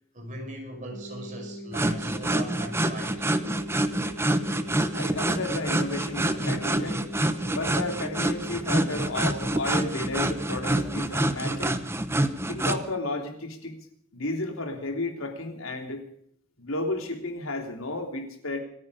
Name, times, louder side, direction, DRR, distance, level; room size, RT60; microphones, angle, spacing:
voice 1, 0.1-3.2, right 1 dB, 40° right, 2 dB, 5.2 m, -38 dB
sound 1, 0.9-10.9, equal, 35° left, 2.7 m, -40 dB
sound 2, 1.7-12.8, right 1 dB, 10° right, 0.9 m, -27 dB
voice 2, 4.9-7.1 7.5-11.8 12.5-13.8 14.1-16.0 16.6-18.6, left 2 dB, 85° left, 3 dB, 3.4 m, -32 dB
27.0 x 9.7 x 5.0 m, 0.67 s
head